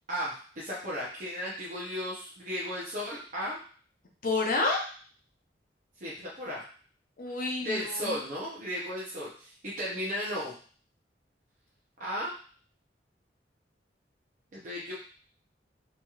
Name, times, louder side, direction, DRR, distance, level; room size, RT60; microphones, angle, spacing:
voice 1, 0.1-3.6 6.0-6.6 7.6-10.5 12.0-12.3 14.5-14.9, equal, 45° right, -6 dB, 0.7 m, -35 dB
voice 2, 4.2-4.8 7.2-8.2, left 3 dB, 50° left, 0 dB, 0.7 m, -29 dB
3.1 x 2.8 x 2.4 m, 0.43 s
head